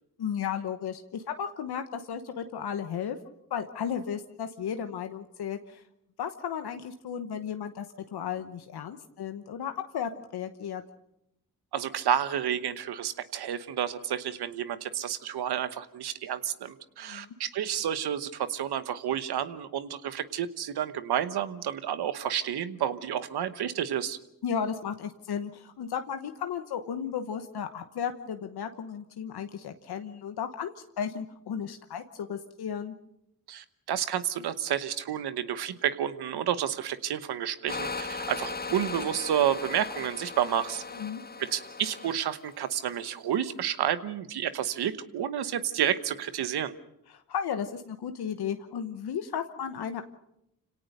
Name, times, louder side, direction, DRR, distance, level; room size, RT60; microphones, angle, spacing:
voice 1, 0.2-3.2 3.5-5.8 6.2-10.8 17.0-17.3 24.4-32.9 40.9-41.2 47.1-50.0, left 8 dB, 85° left, 7 dB, 1.1 m, -34 dB
voice 2, 11.7-24.2 33.5-40.8 41.4-46.7, right 10 dB, 90° right, 12 dB, 1.1 m, -30 dB
sound 1, 37.7-43.1, left 4 dB, 25° left, 1.0 m, -38 dB
26.0 x 17.5 x 6.6 m, 0.82 s
cardioid pair, 50°, 38 cm